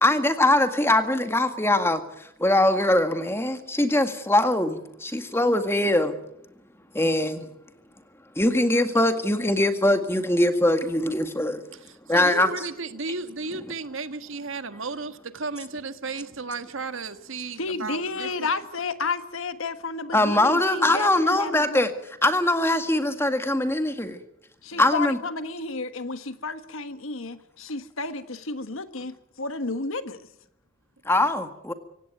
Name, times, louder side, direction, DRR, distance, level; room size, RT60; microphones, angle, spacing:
voice 1, 0.0-6.2 6.9-7.5 8.4-11.6 12.1-12.5 13.5-13.7 20.1-21.9 22.2-24.2 24.8-25.2 31.1-31.7, left 1 dB, 10° left, 8 dB, 1.9 m, -22 dB
voice 2, 12.1-18.5 24.7-24.8, right 3 dB, 65° right, 10 dB, 1.5 m, -34 dB
voice 3, 17.6-21.9 24.6-30.2, left 3 dB, 70° left, 11 dB, 1.4 m, -32 dB
25.5 x 17.0 x 9.2 m, 0.79 s
head